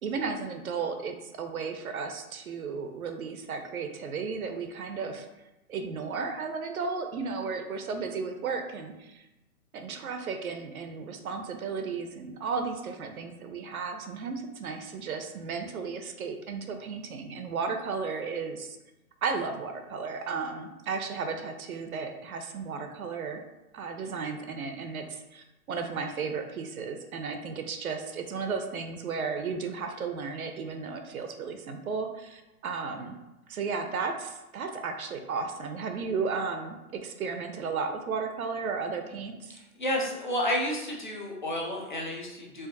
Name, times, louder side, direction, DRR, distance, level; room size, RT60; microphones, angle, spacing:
voice 1, 0.0-5.3 5.7-9.3 9.7-18.8 19.2-23.4 23.7-33.2 33.5-39.6, right 5 dB, 70° right, 6 dB, 0.6 m, -34 dB
voice 2, 39.8-42.7, left 1 dB, 35° left, -2 dB, 0.4 m, -31 dB
4.9 x 2.5 x 2.7 m, 1.0 s
hypercardioid pair, 180°, 45 cm